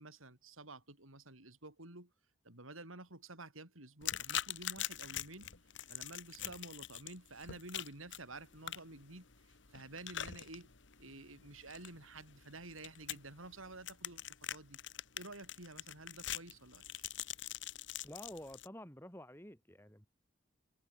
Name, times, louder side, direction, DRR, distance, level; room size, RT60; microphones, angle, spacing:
voice 1, 0.0-2.1 2.4-5.5 5.9-10.7 11.0-14.8 15.1-17.1, right 2 dB, 90° right, 6.2 m, -51 dB
sound 1, 4.0-18.7, left 11 dB, 65° left, 1.9 m, -44 dB
voice 2, 18.0-20.1, left 1 dB, 10° left, 5.3 m, -50 dB
head